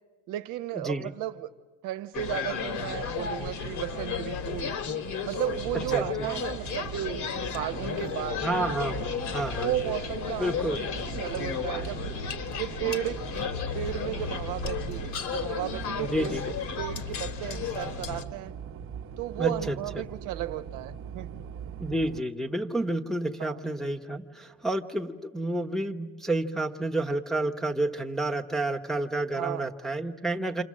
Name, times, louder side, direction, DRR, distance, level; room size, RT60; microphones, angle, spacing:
voice 1, 0.3-1.5 1.8-4.8 5.2-7.2 7.5-8.4 9.6-12.1 12.6-16.4 16.8-18.5 19.2-21.4 23.4-23.6 29.3-29.7, right 13 dB, 70° right, 1.0 m, -34 dB
sound 1, 2.1-18.2, left 6 dB, 60° left, 1.8 m, -33 dB
sound 2, 5.5-22.2, right 7 dB, 45° right, 0.9 m, -42 dB
voice 2, 8.4-9.7 10.4-10.8 16.0-16.4 19.4-20.0 21.8-30.6, right 2 dB, ahead, 1.0 m, -30 dB
28.0 x 26.5 x 7.5 m
cardioid pair, 130°, 32 cm